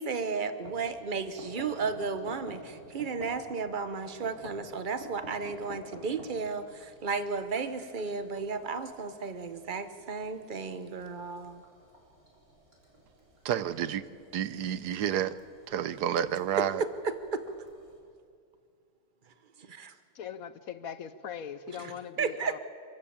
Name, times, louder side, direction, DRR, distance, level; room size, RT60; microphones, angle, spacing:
voice 1, 0.0-11.6 16.6-17.4 19.6-19.9 21.7-22.6, right 4 dB, 35° right, 1.0 m, -34 dB
sound 1, 0.6-18.0, equal, 65° right, 4.7 m, -51 dB
voice 2, 13.4-14.0 14.3-15.4 15.7-16.8, right 10 dB, 85° right, 1.4 m, -30 dB
voice 3, 20.1-22.6, left 8 dB, 65° left, 1.1 m, -40 dB
26.0 x 14.5 x 8.7 m
omnidirectional pair, 1.7 m